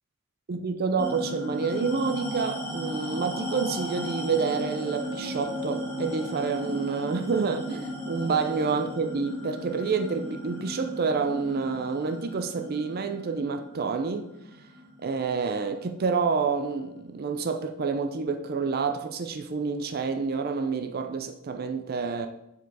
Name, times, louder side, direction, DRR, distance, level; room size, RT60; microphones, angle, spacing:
voice 1, 0.5-14.3 15.0-22.3, right 5 dB, 45° right, 0.4 m, -28 dB
sound 1, 1.0-15.8, equal, 10° left, 1.6 m, -36 dB
6.6 x 4.5 x 4.7 m
head